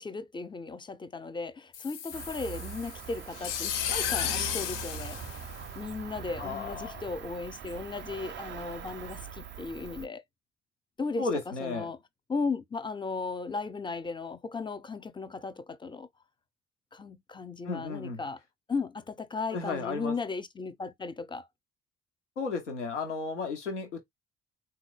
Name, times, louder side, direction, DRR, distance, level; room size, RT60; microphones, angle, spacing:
voice 1, 0.0-5.2 5.8-10.2 11.0-11.2 11.6-12.0 12.3-16.1 16.9-18.4 18.7-21.5, left 4 dB, 15° left, 0.5 m, -36 dB
sound 1, 1.7-6.1, left 9 dB, 60° left, 0.8 m, -34 dB
Cricket, 2.1-10.1, right 9 dB, 35° right, 0.5 m, -42 dB
voice 2, 6.4-7.0 11.2-11.9 17.6-18.2 19.5-20.1 22.4-24.0, left 4 dB, 85° left, 0.8 m, -34 dB
3.7 x 2.3 x 3.2 m
figure-of-eight pair, 50°, 35 cm